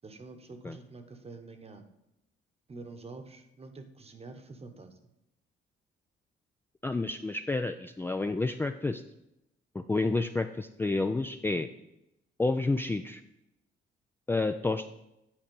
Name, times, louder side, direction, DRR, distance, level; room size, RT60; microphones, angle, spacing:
voice 1, 0.0-1.8 2.7-5.0, right 3 dB, 30° right, 7 dB, 1.0 m, -47 dB
voice 2, 6.8-9.0 9.7-11.7 12.4-13.2 14.3-14.9, left 3 dB, 10° left, 7 dB, 0.3 m, -30 dB
9.1 x 4.3 x 5.4 m, 0.87 s
cardioid pair, 90°, 20 cm